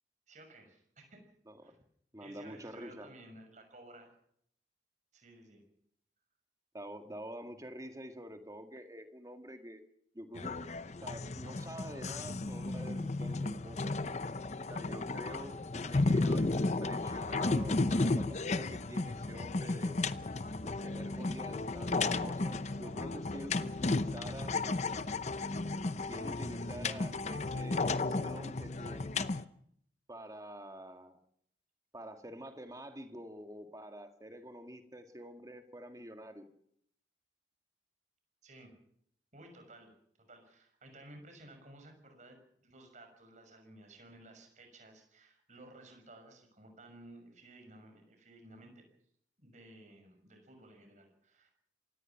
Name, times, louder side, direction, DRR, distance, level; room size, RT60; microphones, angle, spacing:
voice 1, 0.3-1.2 1.6-1.7 2.2-4.2 5.1-5.6 15.7-15.9 24.6-25.1 38.4-38.7 39.3-39.9 40.3-48.9 49.4-51.5, right 1 dB, 45° right, 5 dB, 6.1 m, -55 dB
voice 2, 1.5-1.8 2.1-3.1 6.7-9.8 10.1-10.6 11.0-14.0 14.7-20.0 20.6-24.6 26.0-29.1 30.1-31.1 31.9-36.4, equal, 20° right, 6 dB, 1.9 m, -47 dB
sound 1, 10.4-29.4, left 3 dB, 40° left, 0.7 m, -34 dB
27.0 x 18.0 x 5.9 m, 0.70 s
head